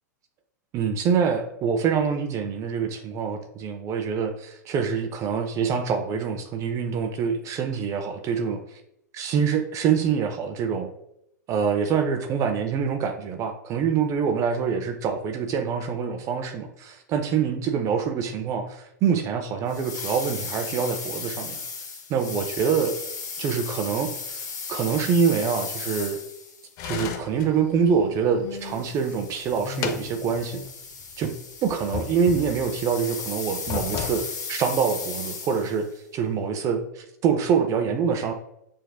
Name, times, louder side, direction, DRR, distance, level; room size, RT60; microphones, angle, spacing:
voice 1, 0.7-8.8 9.1-10.9 11.5-21.6 22.1-23.0 23.4-24.4 24.7-26.2 26.8-30.6 31.2-31.3 31.6-38.3, right 6 dB, 35° right, 6 dB, 0.4 m, -25 dB
sound 1, 19.7-26.7 28.6-35.8, left 4 dB, 85° left, 0.9 m, -36 dB
sound 2, 26.8-28.9 29.3-30.7 31.0-31.1 31.7-32.9 33.5-34.2, left 7 dB, 40° left, 0.6 m, -34 dB
5.9 x 2.6 x 2.3 m, 0.79 s
hypercardioid pair, 105°, 10 cm